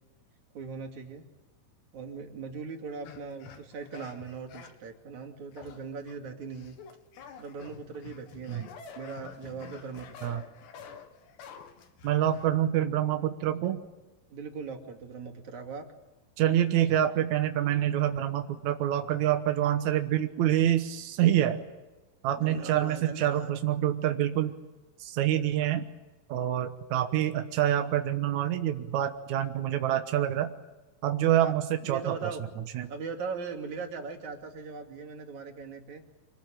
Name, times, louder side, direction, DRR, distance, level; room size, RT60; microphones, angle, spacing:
voice 1, 0.5-1.2 1.9-6.8 7.4-10.4 14.3-15.8 22.4-23.6 31.4-31.5 31.8-32.4 32.9-36.0, right 5 dB, 45° right, 3 dB, 3.5 m, -40 dB
sound 1, 3.0-4.9 5.5-6.2 6.5-12.7, left 7 dB, 75° left, 4.0 m, -48 dB
voice 2, 12.0-13.8 16.4-21.6 22.2-24.5 25.0-25.9 26.3-30.5 31.0-32.9, right 11 dB, 75° right, 7 dB, 1.7 m, -27 dB
26.0 x 19.5 x 9.1 m, 1.1 s
omnidirectional pair, 5.1 m